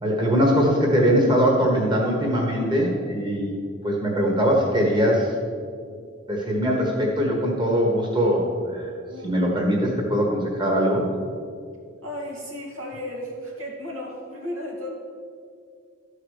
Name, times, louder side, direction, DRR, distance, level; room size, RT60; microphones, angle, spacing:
voice 1, 0.0-3.6 3.8-5.3 6.3-8.9 9.2-11.0, equal, 20° right, -1 dB, 1.4 m, -21 dB
voice 2, 9.1-9.4 12.0-14.9, left 1 dB, 85° right, -2 dB, 2.4 m, -34 dB
12.5 x 4.9 x 6.5 m, 2.2 s
head